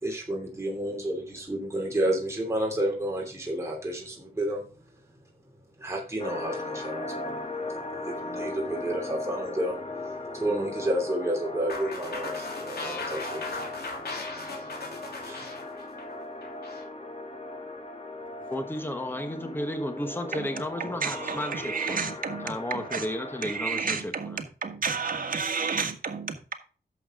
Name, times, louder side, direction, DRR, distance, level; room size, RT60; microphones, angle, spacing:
voice 1, 0.0-4.6 5.8-13.6 15.2-15.6, right 1 dB, 15° right, 2.8 m, -31 dB
sound 1, 6.2-23.7, left 2 dB, 40° left, 1.8 m, -38 dB
sound 2, 11.7-16.8, left 3 dB, 80° left, 2.9 m, -37 dB
voice 2, 18.5-22.1 22.4-24.4, left 1 dB, 15° left, 1.3 m, -33 dB
voice 3, 20.3-23.0 23.4-26.5, right 5 dB, 60° right, 1.7 m, -32 dB
11.0 x 7.1 x 3.8 m
wide cardioid pair, 115°, 16 cm